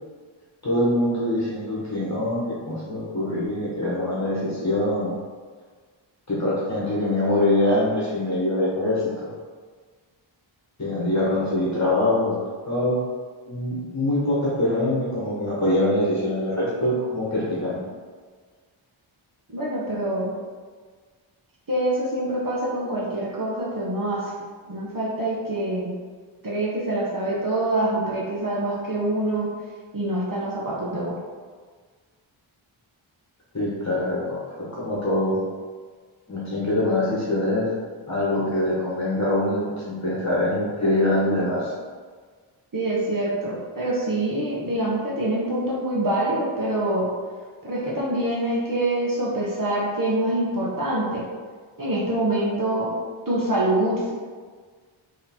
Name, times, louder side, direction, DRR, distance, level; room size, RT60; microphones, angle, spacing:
voice 1, 0.6-5.2 6.3-9.3 10.8-12.4 12.6-13.0 13.5-17.8 33.5-35.4 36.3-37.7 38.1-41.7, left 1 dB, 35° left, -7 dB, 1.3 m, -24 dB
voice 2, 19.5-20.3 21.7-24.3 24.7-25.9 26.4-29.5 29.9-31.2 42.7-47.1 47.6-51.2 51.8-52.9 53.3-54.1, right 1 dB, 40° right, -5 dB, 1.2 m, -25 dB
3.9 x 3.1 x 4.3 m, 1.5 s
wide cardioid pair, 75°, 48 cm